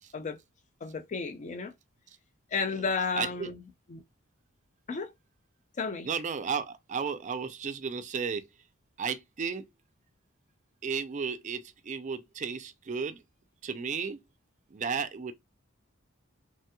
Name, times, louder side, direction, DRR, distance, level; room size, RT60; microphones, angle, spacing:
voice 1, 0.8-1.7 2.5-3.6 3.9-4.0 4.9-5.1 5.8-6.1, left 4 dB, 35° left, 0.4 m, -32 dB
voice 2, 3.1-3.5 6.0-8.5 9.0-9.7 10.8-13.2 13.6-14.2 14.7-15.3, right 6 dB, 35° right, 0.4 m, -33 dB
3.2 x 2.8 x 2.2 m
head